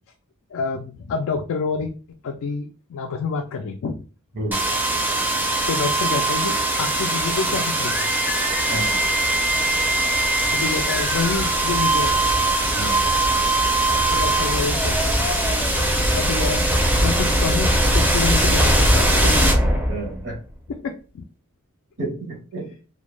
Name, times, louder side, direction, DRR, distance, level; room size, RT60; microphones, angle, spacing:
voice 1, 0.5-4.0 5.7-8.1 8.5-9.0 10.5-12.6 14.1-15.0 16.1-16.6 17.0-19.9 20.8-21.2, left 5 dB, 65° left, 4 dB, 0.3 m, -28 dB
sound 1, 4.5-20.3, right 1 dB, 10° right, 0.4 m, -20 dB
voice 2, 8.7-9.0 12.7-13.0 19.9-20.4 22.0-22.7, right 2 dB, 60° right, 0 dB, 0.7 m, -30 dB
2.2 x 2.1 x 3.0 m, 0.36 s
head